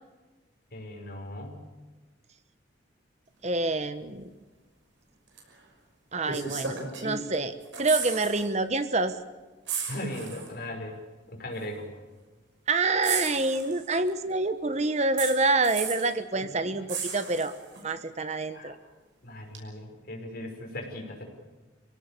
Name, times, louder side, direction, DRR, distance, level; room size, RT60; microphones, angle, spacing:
voice 1, 0.7-1.7 9.9-11.0 11.3-11.9 16.4-16.8 18.5-18.7 19.2-21.2, left 1 dB, 55° left, 2 dB, 5.6 m, -38 dB
voice 2, 3.4-4.3 6.1-9.2 12.7-17.5 17.8-18.7, right 3 dB, 35° right, 11 dB, 1.2 m, -27 dB
sound 1, 5.4-5.5 6.2-7.3 7.6-8.5 8.8-8.9 9.7-10.5 11.6-11.7 13.0-14.1 15.2-16.1 16.9-17.8 19.5-19.6, right 6 dB, 75° right, 6.0 m, -34 dB
27.0 x 17.5 x 8.6 m, 1.3 s
head